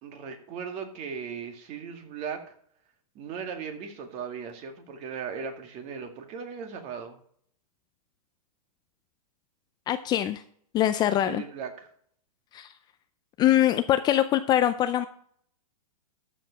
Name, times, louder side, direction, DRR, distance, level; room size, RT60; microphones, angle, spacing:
voice 1, 0.0-2.4 3.2-7.2 11.3-11.9, right 6 dB, 35° right, 6 dB, 2.0 m, -37 dB
voice 2, 9.9-10.4 10.7-11.4 12.5-12.7 13.4-15.1, left 12 dB, 20° left, 10 dB, 0.4 m, -23 dB
13.5 x 5.2 x 5.8 m, 0.62 s
hypercardioid pair, 135°, 19 cm